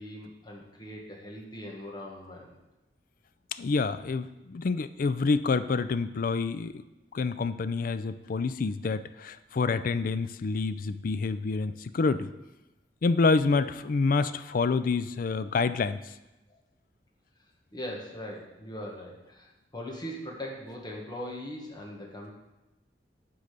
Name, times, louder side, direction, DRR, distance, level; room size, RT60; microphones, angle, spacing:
voice 1, 0.0-2.6 16.5-16.6 17.7-22.3, equal, 25° left, -1 dB, 1.6 m, -40 dB
voice 2, 3.6-6.8 7.1-12.3 13.0-16.0, left 4 dB, 50° left, 13 dB, 0.4 m, -27 dB
9.8 x 3.9 x 6.7 m, 0.99 s
head